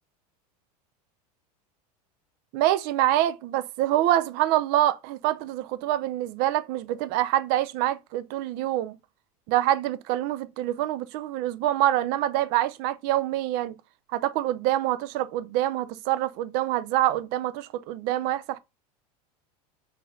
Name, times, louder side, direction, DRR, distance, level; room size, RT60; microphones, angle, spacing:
voice 1, 2.5-9.0 9.5-13.8 14.1-18.6, right 14 dB, 55° right, 0.5 m, -26 dB
3.8 x 2.7 x 3.7 m
hypercardioid pair, 95°, 20 cm